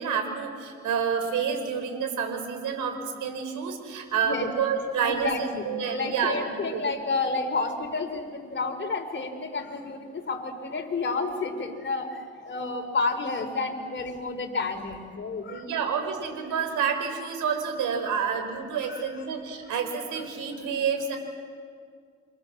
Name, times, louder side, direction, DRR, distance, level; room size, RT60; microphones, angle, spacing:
voice 1, 0.0-6.8 15.5-21.2, right 6 dB, 85° right, 5 dB, 5.0 m, -29 dB
voice 2, 5.0-15.6 18.0-18.1 18.9-19.0, left 3 dB, 40° left, 5 dB, 4.1 m, -30 dB
29.0 x 26.5 x 7.4 m, 2.1 s
cardioid pair, 90°, 30 cm